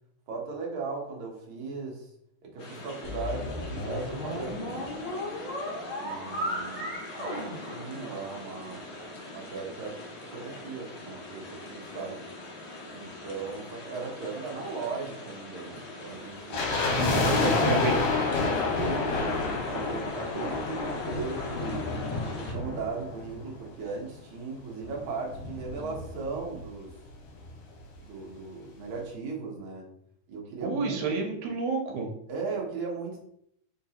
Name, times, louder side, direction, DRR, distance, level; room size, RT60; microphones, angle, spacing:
voice 1, 0.3-2.1 2.4-4.8 6.0-6.9 7.2-8.9 9.3-10.0 10.3-12.2 12.9-16.8 18.4-21.9 22.3-26.9 28.0-29.9 30.3-31.1 32.3-33.3, right 4 dB, 60° right, -2 dB, 1.5 m, -37 dB
sound 1, 2.6-22.5, left 2 dB, 90° left, 1.1 m, -44 dB
sound 2, 3.0-8.5, left 1 dB, 45° left, 0.8 m, -35 dB
sound 3, 16.5-23.8 24.0-24.1 24.8-26.6 26.9-27.0 27.2-27.5 28.0-28.1, left 4 dB, 70° left, 1.9 m, -29 dB
voice 2, 16.7-18.0 30.6-32.1, right 4 dB, 75° right, 3 dB, 2.1 m, -30 dB
4.4 x 3.9 x 2.8 m, 0.69 s
omnidirectional pair, 3.6 m